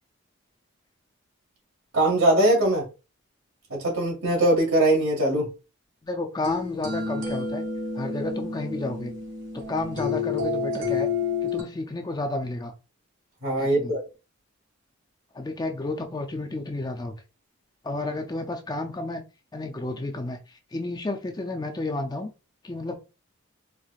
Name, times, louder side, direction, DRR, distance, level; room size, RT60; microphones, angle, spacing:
voice 1, 1.9-2.8 3.7-5.5 13.4-14.0, right 1 dB, 80° right, 2.1 m, -21 dB
voice 2, 6.0-7.6 8.0-9.1 9.5-11.1 11.4-12.7 13.6-13.9 15.3-17.1 17.8-19.2 19.5-22.3 22.6-23.0, left 2 dB, 20° left, 0.4 m, -31 dB
sound 1, 6.4-11.6, left 4 dB, 60° right, 1.5 m, -29 dB
4.6 x 2.4 x 2.4 m
head